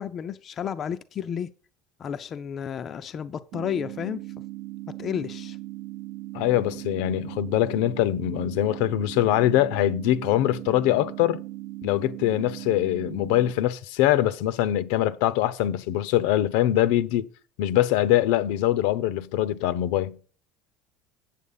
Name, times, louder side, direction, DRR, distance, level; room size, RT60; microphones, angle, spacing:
voice 1, 0.0-1.5 2.0-4.2 5.0-5.6, left 8 dB, 25° left, 0.4 m, -32 dB
sound 1, 3.5-13.5, right 18 dB, 50° right, 0.4 m, -38 dB
voice 2, 6.3-11.4 11.8-17.2 17.6-20.2, left 13 dB, 75° left, 0.7 m, -23 dB
8.4 x 7.3 x 5.5 m
cardioid pair, 180°, 0 cm